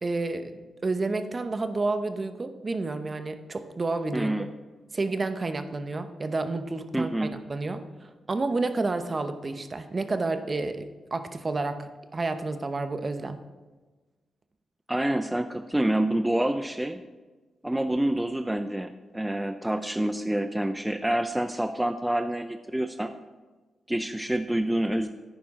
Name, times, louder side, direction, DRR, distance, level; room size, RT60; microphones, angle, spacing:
voice 1, 0.0-4.3 4.9-13.4, right 3 dB, 35° right, 9 dB, 0.8 m, -30 dB
voice 2, 4.1-4.5 6.9-7.3 14.9-17.0 17.6-23.1 23.9-25.1, right 1 dB, 10° right, 8 dB, 0.5 m, -27 dB
11.0 x 9.4 x 3.7 m, 1.3 s
cardioid pair, 65°, 0 cm